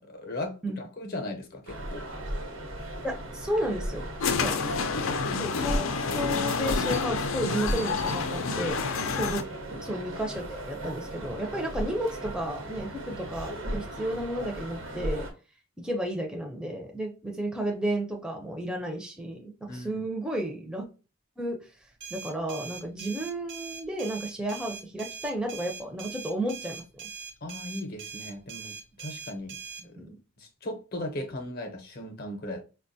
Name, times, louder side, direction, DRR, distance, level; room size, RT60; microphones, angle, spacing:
voice 1, 0.0-2.1 9.1-9.3 19.7-20.0 27.4-29.6 29.8-30.0 30.4-32.6, left 1 dB, 50° left, 0.7 m, -37 dB
sound 1, 1.7-15.3, right 1 dB, 75° right, 1.0 m, -36 dB
voice 2, 3.0-4.1 4.4-4.6 5.2-8.8 9.1-15.3 15.8-20.9 21.4-21.6 22.1-26.8 30.0-30.2, right 1 dB, 5° right, 0.5 m, -32 dB
sound 2, 4.2-9.4, left 5 dB, 85° left, 0.5 m, -29 dB
sound 3, 22.0-29.8, right 6 dB, 60° right, 0.6 m, -42 dB
4.8 x 2.2 x 2.6 m
head